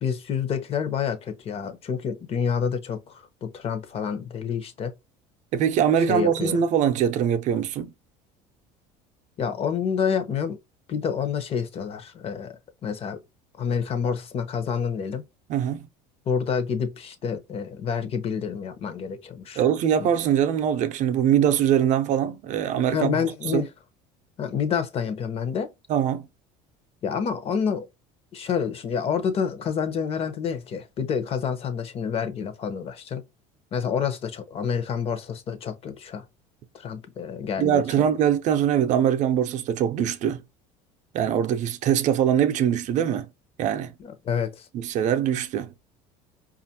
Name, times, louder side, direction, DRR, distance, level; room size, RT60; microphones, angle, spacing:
voice 1, 0.0-4.9 6.1-6.6 9.4-10.6 10.9-12.5 12.8-13.2 13.6-15.2 16.3-19.6 20.0-20.1 22.9-23.7 24.4-25.7 27.0-27.9 28.3-33.2 33.7-36.2 36.7-38.1 44.0-44.7, left 7 dB, 40° left, 0.8 m, -28 dB
voice 2, 5.5-7.9 15.5-15.8 19.6-23.2 23.5-23.7 25.9-26.2 37.6-40.4 41.1-43.3 43.6-43.9 44.7-45.7, right 9 dB, 50° right, 0.6 m, -22 dB
4.9 x 2.5 x 2.8 m
cardioid pair, 130°, 16 cm